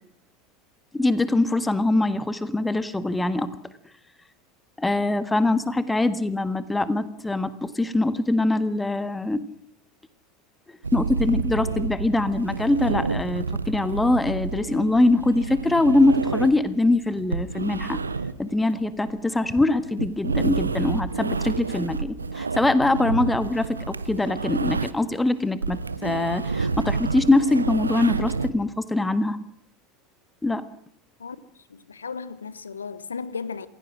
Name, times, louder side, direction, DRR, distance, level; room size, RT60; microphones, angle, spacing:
voice 1, 0.9-3.5 4.8-9.4 10.9-18.0 18.4-29.4 30.4-30.6, left 2 dB, 10° left, 1.6 m, -23 dB
sound 1, 10.8-25.2 25.5-28.5, right 4 dB, 85° right, 0.9 m, -29 dB
voice 2, 31.7-33.7, left 5 dB, 80° left, 1.1 m, -35 dB
27.5 x 16.5 x 6.3 m
figure-of-eight pair, 75°, 0 cm